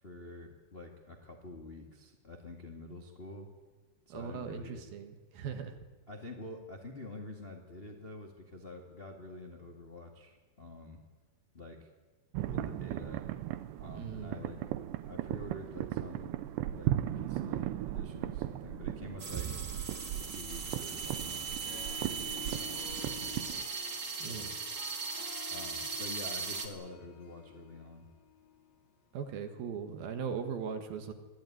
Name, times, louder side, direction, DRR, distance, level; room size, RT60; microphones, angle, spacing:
voice 1, 0.0-3.5 4.0-4.8 6.1-11.0 11.5-11.9 12.5-13.3 13.8-14.6 15.1-16.4 16.7-19.6 20.1-23.4 24.2-24.5 25.5-28.1, left 2 dB, 30° left, 2 dB, 1.1 m, -47 dB
voice 2, 4.1-5.8 13.9-14.4 24.2-24.6 29.1-31.1, right 6 dB, 65° right, 7 dB, 3.2 m, -39 dB
sound 1, 12.3-23.7, right 13 dB, 90° right, 3.0 m, -37 dB
sound 2, 19.2-26.7, right 5 dB, 35° right, 1.5 m, -39 dB
Harp, 21.5-28.9, left 8 dB, 80° left, 4.1 m, -51 dB
24.0 x 14.5 x 9.4 m, 1.2 s
omnidirectional pair, 4.9 m